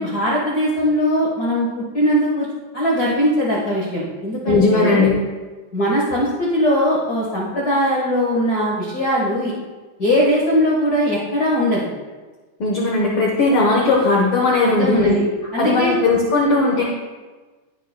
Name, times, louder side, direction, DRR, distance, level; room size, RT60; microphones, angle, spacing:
voice 1, 0.0-2.5 2.7-5.0 5.7-9.5 10.0-11.9 14.6-15.2 15.5-16.0, equal, 45° left, -5 dB, 1.4 m, -20 dB
voice 2, 4.4-5.1 12.6-15.2 15.6-16.8, left 3 dB, 60° left, -2 dB, 1.6 m, -17 dB
17.0 x 6.7 x 2.2 m, 1.3 s
omnidirectional pair, 3.5 m